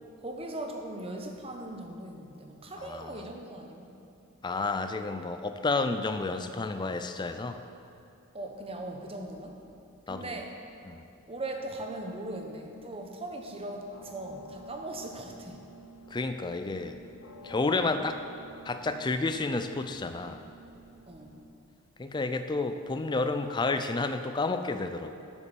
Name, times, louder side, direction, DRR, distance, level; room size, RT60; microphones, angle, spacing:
voice 1, 0.2-3.9 8.3-9.6 10.1-10.6 11.3-15.6 21.1-21.3, right 1 dB, 25° right, 3 dB, 0.9 m, -39 dB
voice 2, 2.8-3.3 4.4-7.6 10.1-10.4 10.9-11.0 16.1-17.0 17.4-18.2 18.7-20.4 22.0-25.1, left 3 dB, 20° left, 8 dB, 0.4 m, -31 dB
sound 1, 13.9-21.5, right 1 dB, 70° left, 0.8 m, -50 dB
8.4 x 7.2 x 6.9 m, 2.6 s
head